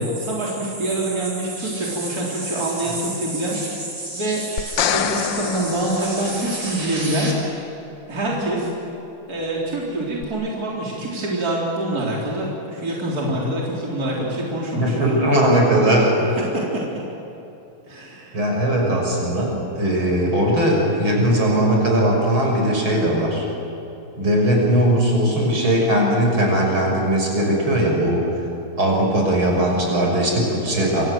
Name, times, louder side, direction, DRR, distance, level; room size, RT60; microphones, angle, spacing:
voice 1, 0.0-3.6 4.1-4.4 4.9-7.3 8.1-8.7 9.3-15.2 16.5-16.8 17.8-18.4, right 1 dB, 45° right, -4 dB, 4.4 m, -25 dB
voice 2, 4.0-5.3 5.6-5.7 6.0-7.3 14.8-16.0 18.3-23.5 24.2-28.2 28.8-31.1, right 1 dB, 80° right, -1 dB, 7.1 m, -20 dB
sound 1, 4.6-6.9 10.2-10.3, left 9 dB, 70° left, 1.6 m, -26 dB
27.5 x 27.0 x 7.9 m, 2.9 s
omnidirectional pair, 2.2 m